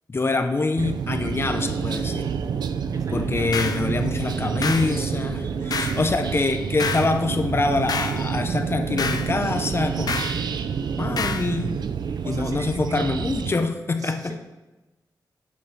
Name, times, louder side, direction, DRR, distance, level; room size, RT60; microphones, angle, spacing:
voice 1, 0.1-2.3 3.1-10.2 11.0-11.8 12.2-14.4, left 3 dB, 35° left, 7 dB, 0.8 m, -25 dB
sound 1, 0.8-13.5, right 7 dB, 85° right, 0.5 m, -28 dB
sound 2, 1.5-11.3, right 1 dB, 30° right, 3.4 m, -44 dB
voice 2, 2.9-3.7 5.5-5.9 10.3-10.7 12.2-12.7 14.0-14.4, right 2 dB, 55° right, 5 dB, 1.3 m, -40 dB
sound 3, 3.5-3.8 4.6-4.9 5.7-6.0 6.8-7.1 7.9-8.2 9.0-9.3 10.1-10.4 11.2-11.5, left 5 dB, 65° left, 0.8 m, -28 dB
8.6 x 8.4 x 4.1 m, 1.1 s
wide cardioid pair, 90°, 7 cm